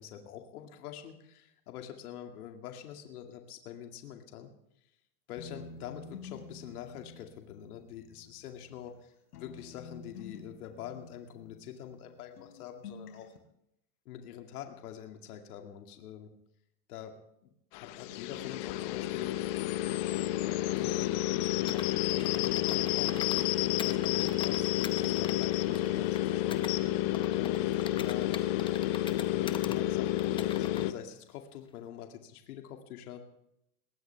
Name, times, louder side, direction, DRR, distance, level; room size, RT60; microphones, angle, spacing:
voice 1, 0.0-4.5 5.3-13.3 14.1-16.3 16.9-19.4 20.8-23.2 23.8-26.9 27.4-28.3 29.3-33.2, left 10 dB, 70° left, 4 dB, 2.4 m, -45 dB
sound 1, 5.4-9.0 9.3-12.1 12.4-13.4, left 4 dB, 90° left, 4.2 m, -49 dB
sound 2, 17.7-30.9, left 15 dB, 40° left, 0.9 m, -30 dB
Computer keyboard, 21.7-23.5 23.8-26.7 27.1-29.8 30.2-30.9, left 6 dB, 10° left, 0.7 m, -44 dB
21.5 x 18.0 x 3.5 m, 0.80 s
supercardioid pair, 155°, 46 cm